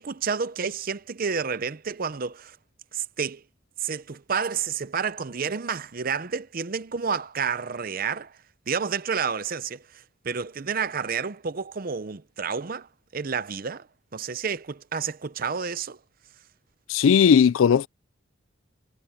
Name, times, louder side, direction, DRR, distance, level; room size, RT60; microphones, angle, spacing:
voice 1, 0.0-2.6 2.9-3.4 3.8-8.3 8.7-9.8 10.2-12.9 13.1-13.9 14.1-16.0, right 6 dB, 45° right, 0.7 m, -30 dB
voice 2, 16.9-17.9, left 7 dB, 80° left, 0.4 m, -17 dB
head